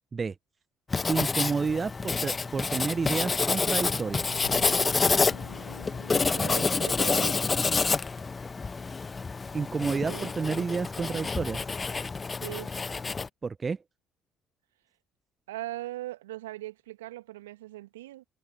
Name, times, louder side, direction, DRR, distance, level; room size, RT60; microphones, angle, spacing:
Writing, 0.9-13.3, left 4 dB, 25° left, 1.0 m, -28 dB
voice 1, 1.1-4.4 9.5-11.6 13.4-13.8, right 5 dB, 30° right, 0.7 m, -30 dB
sound 1, 4.3-7.8, left 7 dB, 85° left, 3.8 m, -48 dB
voice 2, 6.3-7.7 10.1-10.3 12.4-12.7 15.5-18.2, right 16 dB, 75° right, 2.1 m, -40 dB
figure-of-eight pair, 50°, 0 cm